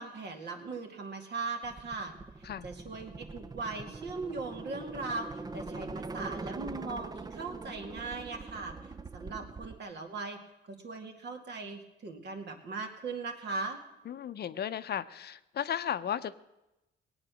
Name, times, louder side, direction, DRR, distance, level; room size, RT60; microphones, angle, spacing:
voice 1, 0.0-2.2 2.6-10.4 10.7-13.8, right 3 dB, 60° right, 4 dB, 2.3 m, -39 dB
sound 1, 1.6-9.8, right 3 dB, 20° right, 0.5 m, -43 dB
voice 2, 14.1-16.4, left 9 dB, 55° left, 13 dB, 0.7 m, -35 dB
18.5 x 9.0 x 6.3 m, 0.96 s
cardioid pair, 90°, 20 cm